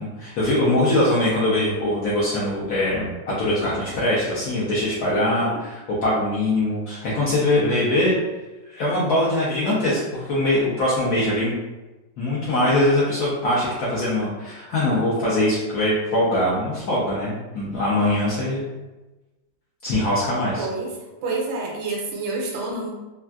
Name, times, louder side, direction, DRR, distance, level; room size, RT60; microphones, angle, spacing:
voice 1, 0.0-8.1 8.7-11.6 12.2-18.7 19.8-20.6, left 1 dB, 65° left, -7 dB, 1.0 m, -22 dB
voice 2, 5.2-5.6 20.6-20.9 21.2-22.9, right 3 dB, 85° right, -1 dB, 1.3 m, -28 dB
3.5 x 2.4 x 2.2 m, 1.1 s
omnidirectional pair, 2.0 m